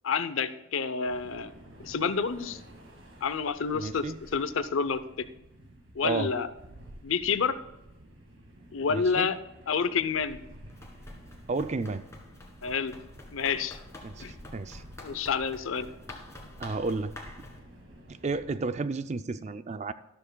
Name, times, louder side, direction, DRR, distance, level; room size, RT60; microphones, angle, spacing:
voice 1, 0.0-1.5 1.8-2.6 3.2-5.3 6.0-6.5 7.0-7.6 8.7-9.4 9.7-10.4 12.6-13.0 13.3-13.8 14.2-14.3 15.0-15.9, left 5 dB, 70° left, 13 dB, 0.6 m, -29 dB
sound 1, 1.0-18.7, equal, 60° right, 1.9 m, -51 dB
voice 2, 3.7-4.2 6.0-6.3 8.9-9.3 11.5-12.0 14.0-14.8 15.1-15.2 16.6-17.3 18.1-19.9, right 3 dB, 30° right, 12 dB, 0.4 m, -32 dB
Run, 10.7-17.6, left 1 dB, 15° left, 1.6 m, -48 dB
13.0 x 12.5 x 2.3 m, 0.93 s
head